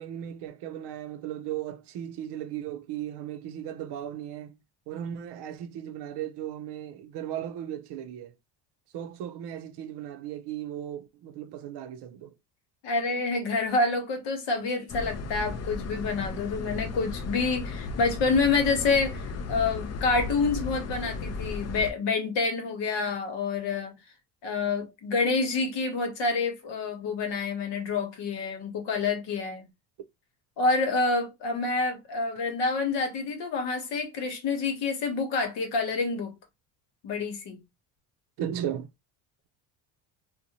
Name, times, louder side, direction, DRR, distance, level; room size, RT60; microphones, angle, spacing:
voice 1, 0.0-4.6 4.9-8.3 8.9-12.3 38.4-38.9, right 10 dB, 60° right, 0.6 m, -36 dB
voice 2, 12.8-23.9 24.4-29.7 30.6-36.3 37.0-37.6, left 4 dB, 65° left, 1.0 m, -28 dB
sound 1, 14.9-21.9, left 4 dB, 35° left, 0.4 m, -35 dB
2.6 x 2.2 x 2.8 m
cardioid pair, 95°, 47 cm